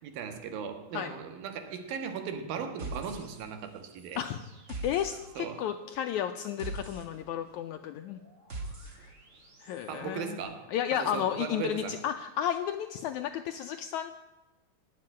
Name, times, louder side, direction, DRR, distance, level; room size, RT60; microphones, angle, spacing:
voice 1, 0.0-4.2 5.4-5.7 9.9-12.0, right 7 dB, 85° right, 7 dB, 3.3 m, -38 dB
sound 1, 2.8-3.7 4.0-10.0, right 2 dB, 30° right, 1.4 m, -44 dB
voice 2, 4.8-8.2 9.0-9.1 9.6-10.4 10.7-14.1, left 10 dB, 80° left, 7 dB, 1.7 m, -33 dB
19.0 x 7.7 x 8.8 m, 1.1 s
omnidirectional pair, 4.0 m